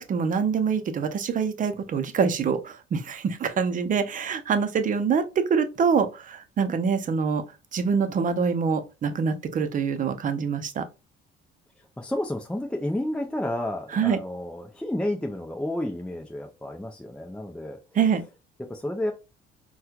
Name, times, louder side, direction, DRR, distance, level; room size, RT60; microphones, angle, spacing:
voice 1, 0.0-7.4 7.7-10.8 13.9-14.2 17.9-18.2, right 6 dB, 40° right, 0.7 m, -25 dB
voice 2, 12.0-17.8 18.6-19.1, left 1 dB, 5° left, 0.5 m, -31 dB
4.2 x 2.3 x 2.3 m
supercardioid pair, 80°, 21 cm